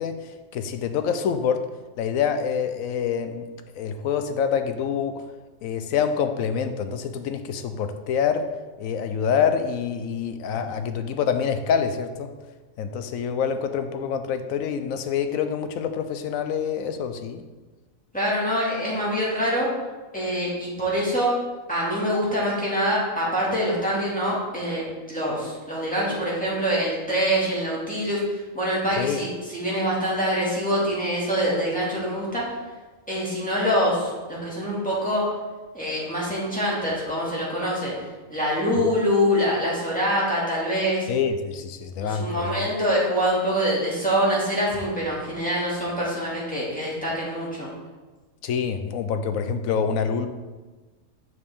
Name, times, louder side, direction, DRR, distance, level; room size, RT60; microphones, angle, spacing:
voice 1, 0.0-1.7 2.0-3.5 3.7-5.2 5.6-8.5 8.8-12.3 12.8-17.4 29.0-29.2 41.1-42.7 48.4-50.3, left 7 dB, 80° left, 8 dB, 1.0 m, -26 dB
voice 2, 18.1-19.7 20.1-21.3 21.7-32.6 33.1-35.3 35.7-37.9 38.3-41.1 42.0-47.7, equal, 5° left, -7 dB, 2.1 m, -25 dB
6.8 x 6.7 x 3.6 m, 1.3 s
omnidirectional pair, 1.4 m